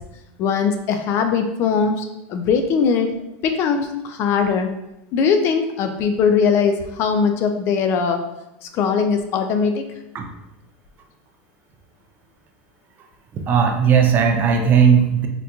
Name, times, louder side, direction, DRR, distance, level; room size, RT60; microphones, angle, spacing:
voice 1, 0.4-3.1 3.4-4.7 5.1-8.2 8.7-9.8, left 6 dB, 40° left, 6 dB, 0.3 m, -20 dB
voice 2, 13.3-15.3, right 7 dB, 30° right, 4 dB, 0.4 m, -16 dB
3.7 x 2.8 x 2.3 m, 0.89 s
supercardioid pair, 145°, 6 cm